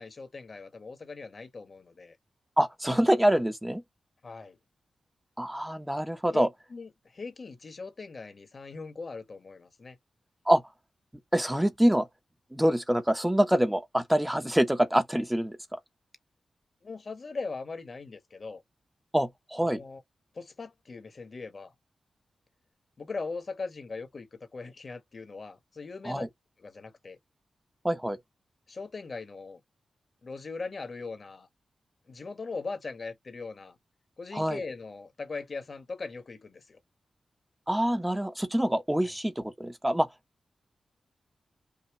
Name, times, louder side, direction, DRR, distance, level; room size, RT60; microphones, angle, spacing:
voice 1, 0.0-2.2 4.2-4.6 6.3-10.0 16.8-18.6 19.6-20.0 20.3-21.7 23.0-26.2 26.6-27.2 28.7-29.6 30.2-31.5 32.1-33.8 34.2-36.8 39.0-39.1, left 4 dB, 55° left, 1.7 m, -40 dB
voice 2, 2.6-3.8 5.4-6.5 10.5-10.6 11.3-12.1 12.5-15.6 19.1-19.8 26.0-26.3 27.8-28.2 34.3-34.6 37.7-40.1, right 1 dB, 10° right, 1.0 m, -25 dB
5.5 x 2.4 x 3.3 m
cardioid pair, 55°, 0 cm